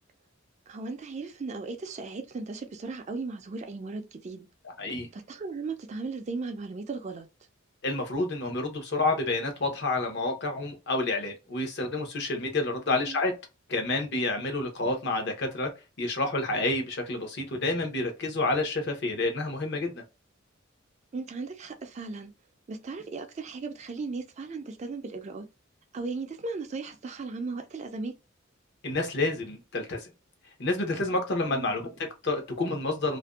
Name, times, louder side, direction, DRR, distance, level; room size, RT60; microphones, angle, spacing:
voice 1, 0.7-4.5 5.1-7.3 12.9-13.2 21.1-22.3 22.7-25.5 25.9-28.2 31.5-31.9, right 3 dB, 35° right, 0.4 m, -36 dB
voice 2, 7.8-13.3 13.7-15.7 16.0-20.0 28.8-30.1 30.6-33.2, left 2 dB, 55° left, 0.8 m, -29 dB
2.5 x 2.1 x 2.3 m
head